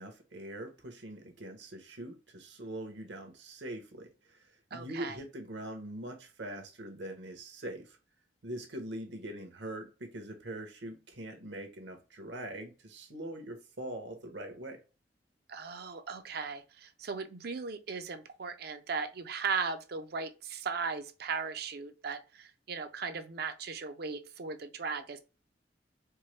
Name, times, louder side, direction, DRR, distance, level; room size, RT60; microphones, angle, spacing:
voice 1, 0.0-8.0 8.4-14.8, right 1 dB, 75° right, 1.0 m, -43 dB
voice 2, 4.7-5.2 15.5-25.2, right 5 dB, 60° right, 0.5 m, -37 dB
4.5 x 2.1 x 3.2 m
head